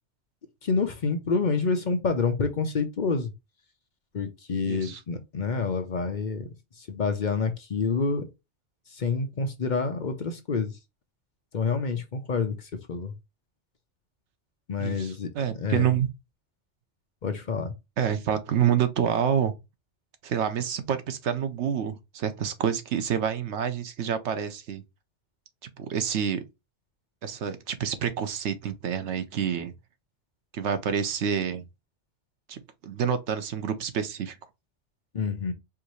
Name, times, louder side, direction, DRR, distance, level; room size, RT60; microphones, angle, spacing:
voice 1, 0.6-3.3 4.1-6.5 6.8-8.3 8.9-10.7 11.5-13.1 14.7-15.3 15.5-15.9 17.2-17.7 35.1-35.5, left 4 dB, 50° left, 0.8 m, -28 dB
voice 2, 4.7-5.0 14.8-16.1 18.0-19.5 20.2-24.8 25.8-26.4 27.2-29.7 30.5-31.6 32.5-34.3, right 8 dB, 80° right, 1.0 m, -28 dB
4.7 x 2.6 x 3.0 m
omnidirectional pair, 1.2 m